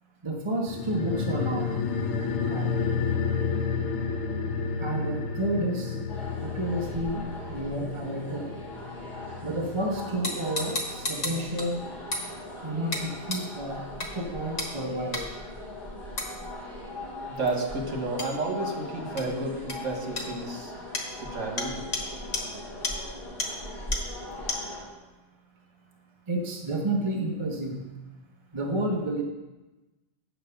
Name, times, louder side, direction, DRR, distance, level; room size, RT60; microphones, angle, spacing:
voice 1, 0.2-1.7 2.5-2.7 4.8-6.0 6.4-7.2 7.5-8.5 9.4-11.8 12.6-13.8 14.1-15.2 26.3-27.8 28.5-29.2, right 1 dB, 25° right, 0 dB, 0.9 m, -30 dB
sound 1, 0.7-11.5 11.8-11.9, left 5 dB, 90° left, 1.1 m, -31 dB
sound 2, 6.1-24.9, left 1 dB, 35° left, 3.1 m, -40 dB
sound 3, 10.2-11.7 12.1-12.3 12.9-13.0 13.3-13.4 14.0-14.1 14.6-14.7 15.1-15.2 16.2-16.3 18.2-18.3 19.2-19.3 19.7-19.8 20.2-20.3 20.9-21.1 21.6-21.7 21.9-22.0 22.3-22.4 22.8-22.9 23.4-23.5 23.9-24.0 24.5-24.6, left 2 dB, 65° left, 1.7 m, -31 dB
voice 2, 17.3-20.7 21.2-22.0, right 2 dB, 80° right, 2 dB, 1.7 m, -31 dB
8.9 x 5.0 x 6.8 m, 1.1 s
omnidirectional pair, 1.3 m